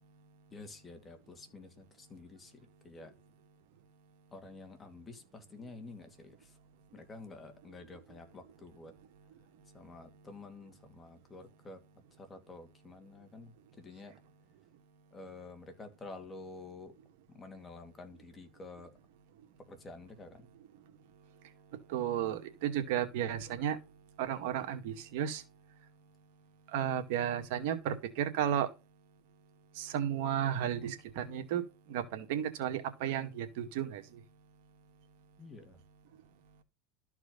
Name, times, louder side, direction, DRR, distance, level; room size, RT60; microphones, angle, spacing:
voice 1, 0.5-3.1 4.3-6.6 6.9-8.9 9.7-11.8 12.2-14.1 15.1-16.9 17.3-18.9 19.6-20.5 35.4-35.8, left 3 dB, 20° left, 2.5 m, -50 dB
voice 2, 21.9-23.8 24.2-25.4 26.7-28.7 29.8-31.6 31.9-34.0, right 10 dB, 65° right, 1.9 m, -33 dB
13.0 x 4.8 x 5.3 m
supercardioid pair, 130°, 0 cm